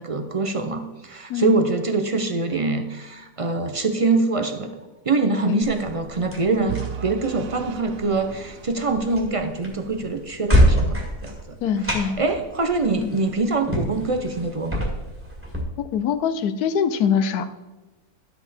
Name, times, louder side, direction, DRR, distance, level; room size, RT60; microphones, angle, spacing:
voice 1, 0.0-4.7 5.0-11.6 11.8-14.9, right 3 dB, 55° right, 6 dB, 0.3 m, -24 dB
sound 1, 5.6-15.6, equal, 10° right, 1.9 m, -26 dB
Vehicle / Engine, 6.7-9.7, right 10 dB, 80° right, 1.2 m, -36 dB
voice 2, 11.6-12.2 13.0-13.1 15.8-17.5, left 7 dB, 80° left, 11 dB, 1.2 m, -23 dB
11.5 x 8.0 x 4.2 m, 1.2 s
omnidirectional pair, 1.6 m